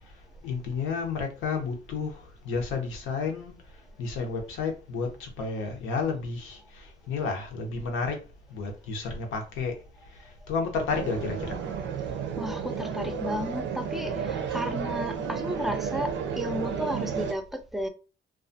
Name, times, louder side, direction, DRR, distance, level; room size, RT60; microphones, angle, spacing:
voice 1, 0.4-2.1 2.5-3.5 4.0-6.6 7.1-8.2 8.5-9.8 10.5-11.6, left 4 dB, 90° left, 0.7 m, -31 dB
sound 1, 10.9-17.3, right 7 dB, 70° right, 0.5 m, -32 dB
voice 2, 12.1-17.9, equal, ahead, 0.4 m, -34 dB
2.4 x 2.3 x 2.5 m
cardioid pair, 90°, 20 cm